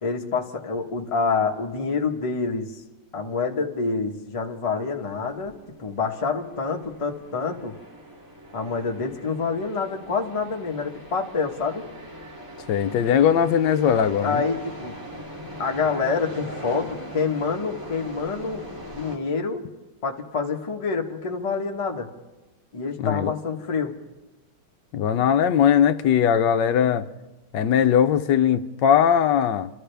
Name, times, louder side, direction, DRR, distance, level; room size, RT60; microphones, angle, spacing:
voice 1, 0.0-2.7 3.1-7.8 8.5-11.9 14.2-14.9 15.6-19.7 20.0-22.1 22.7-23.9, left 4 dB, 20° left, 0.9 m, -27 dB
sound 1, 5.0-19.2, equal, 10° right, 3.0 m, -41 dB
voice 2, 12.7-14.4 23.0-23.3 24.9-27.1 27.5-29.7, left 8 dB, 70° left, 1.2 m, -20 dB
30.0 x 13.0 x 3.4 m
omnidirectional pair, 2.3 m